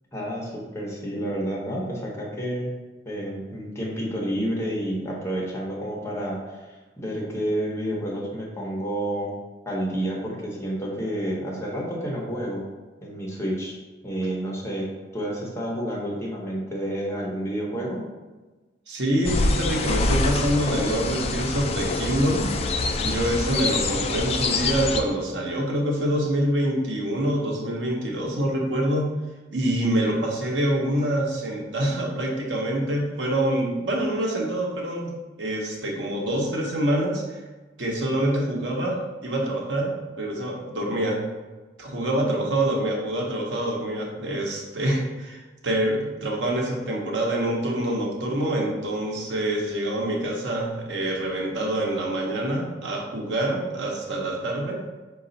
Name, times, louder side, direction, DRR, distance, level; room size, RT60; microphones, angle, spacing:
voice 1, 0.1-2.7 3.0-6.7 7.0-9.3 9.7-12.6 13.0-13.8 14.0-14.9 15.1-18.0, right 1 dB, 15° left, -4 dB, 1.0 m, -29 dB
voice 2, 18.9-22.5 23.0-29.1 29.5-35.1 35.4-37.4 37.8-41.2 41.8-54.8, right 1 dB, 85° right, -1 dB, 0.9 m, -26 dB
sound 1, 19.2-25.0, left 3 dB, 35° left, 0.4 m, -25 dB
5.3 x 2.4 x 3.9 m, 1.2 s
head